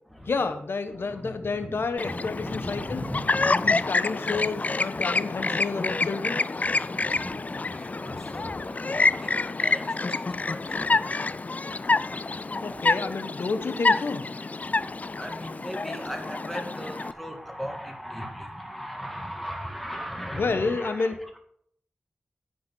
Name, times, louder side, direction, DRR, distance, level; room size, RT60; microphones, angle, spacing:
voice 1, 0.3-3.0 3.5-6.4 12.6-14.3 20.3-21.2, left 4 dB, 70° left, 9 dB, 1.1 m, -30 dB
voice 2, 0.9-6.0 6.6-13.1 14.6-21.4, equal, 5° left, 4 dB, 1.7 m, -39 dB
Chirp tweet, 2.0-17.1, left 3 dB, 40° left, 0.3 m, -27 dB
9.7 x 6.8 x 5.4 m, 0.68 s
cardioid pair, 50°, 4 cm